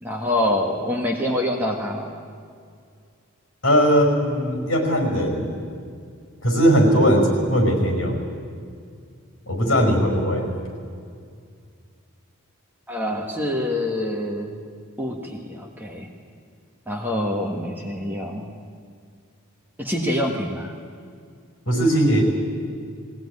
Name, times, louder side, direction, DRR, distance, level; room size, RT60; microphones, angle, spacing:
voice 1, 0.0-2.1 12.9-14.6 15.0-16.1 16.9-18.5 19.8-20.7, left 1 dB, 10° right, 0 dB, 1.5 m, -26 dB
voice 2, 3.6-5.5 6.4-8.2 9.5-10.4 21.7-22.2, equal, 55° left, 2 dB, 5.3 m, -19 dB
19.5 x 17.0 x 9.7 m, 2.2 s
head